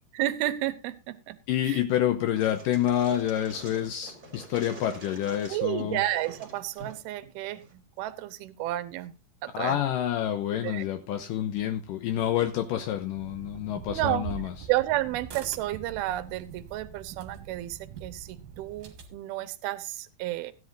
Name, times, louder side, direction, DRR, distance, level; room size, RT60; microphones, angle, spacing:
voice 1, 0.2-1.4 1.7-1.8 5.5-9.1 9.4-9.8 10.6-10.8 13.9-14.3 14.7-20.5, right 15 dB, 80° right, 2.5 m, -31 dB
voice 2, 1.5-6.0 9.5-14.5, left 11 dB, 85° left, 1.9 m, -28 dB
sound 1, 2.3-7.7, right 2 dB, 30° right, 2.9 m, -47 dB
sound 2, 13.1-19.2, right 7 dB, 55° right, 2.8 m, -42 dB
16.0 x 11.0 x 2.6 m
omnidirectional pair, 4.9 m